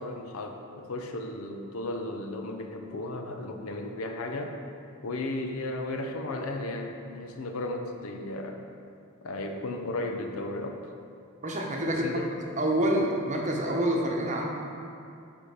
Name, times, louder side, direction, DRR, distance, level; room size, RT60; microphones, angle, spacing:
voice 1, 0.0-4.6 5.0-8.6 9.2-10.8 11.8-12.3, left 2 dB, 80° left, 4 dB, 0.7 m, -35 dB
voice 2, 11.4-12.2 12.6-14.5, right 1 dB, 35° right, -1 dB, 0.9 m, -27 dB
8.8 x 3.7 x 4.9 m, 2.5 s
head